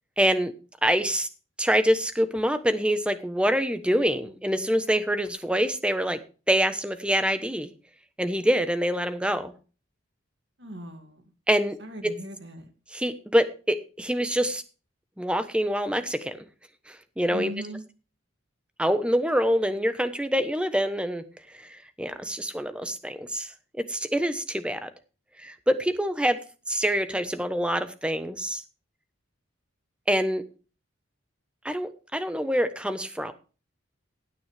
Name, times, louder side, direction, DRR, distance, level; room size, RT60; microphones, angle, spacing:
voice 1, 0.2-0.5 0.8-1.3 1.6-6.2 6.5-7.7 8.2-9.5 11.5-11.8 12.0-12.1 12.9-14.6 15.2-16.5 16.9-17.5 18.8-21.2 21.5-23.5 23.8-24.9 25.4-26.4 26.7-28.6 30.1-30.4 31.6-33.3, equal, 5° right, 10 dB, 1.1 m, -25 dB
voice 2, 10.6-11.2 11.8-12.7 17.3-17.8, equal, 55° right, 7 dB, 2.5 m, -38 dB
16.5 x 9.5 x 3.5 m, 0.35 s
head